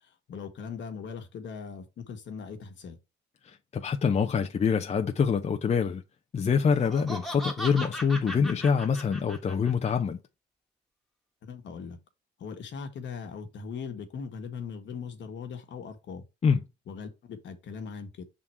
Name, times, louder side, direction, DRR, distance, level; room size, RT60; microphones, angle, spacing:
voice 1, 0.0-3.0 11.4-12.0 12.4-16.2 16.9-18.2, left 6 dB, 65° left, 1.4 m, -40 dB
voice 2, 3.5-6.0 6.3-10.2 16.4-16.6, left 6 dB, 35° left, 0.6 m, -25 dB
Laughter, 6.7-9.9, equal, ahead, 1.4 m, -38 dB
5.8 x 3.8 x 4.5 m
cardioid pair, 90°, 20 cm